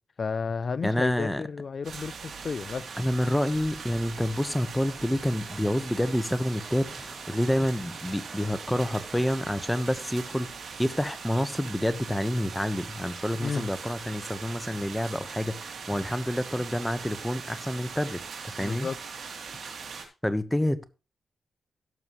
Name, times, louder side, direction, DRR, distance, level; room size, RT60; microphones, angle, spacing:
voice 1, 0.2-2.9 13.4-13.7 18.6-19.0, left 5 dB, 55° left, 0.4 m, -32 dB
voice 2, 0.8-1.4 3.0-18.9 20.2-20.8, equal, 5° left, 1.1 m, -28 dB
sound 1, 1.8-20.0, right 5 dB, 80° right, 3.0 m, -41 dB
sound 2, 4.1-9.7, right 1 dB, 15° right, 2.3 m, -51 dB
17.0 x 7.0 x 3.1 m
cardioid pair, 75°, 0 cm